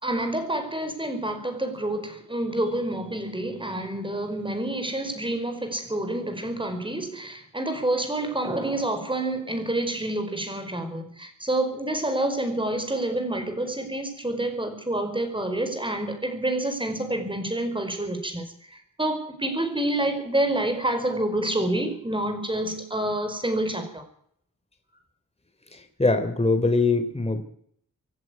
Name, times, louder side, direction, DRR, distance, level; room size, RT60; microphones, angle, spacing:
voice 1, 0.0-24.1, right 1 dB, 15° right, 4.9 m, -28 dB
voice 2, 26.0-27.4, left 3 dB, 20° left, 3.4 m, -22 dB
26.0 x 11.0 x 9.6 m
wide cardioid pair, 125°, 33 cm